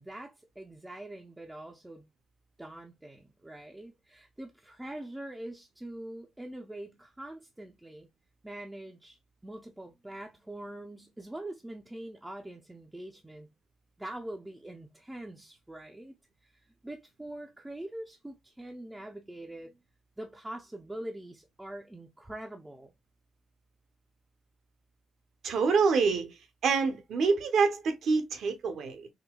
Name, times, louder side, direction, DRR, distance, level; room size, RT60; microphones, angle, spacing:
voice 1, 0.0-2.1 2.6-8.1 8.4-13.5 14.0-16.1 16.4-16.5 16.8-19.7 20.2-22.9, right 1 dB, 10° right, 0.5 m, -43 dB
voice 2, 25.4-26.4 26.6-29.1, right 5 dB, 70° right, 0.8 m, -26 dB
3.8 x 2.2 x 2.2 m
cardioid pair, 90°, 0 cm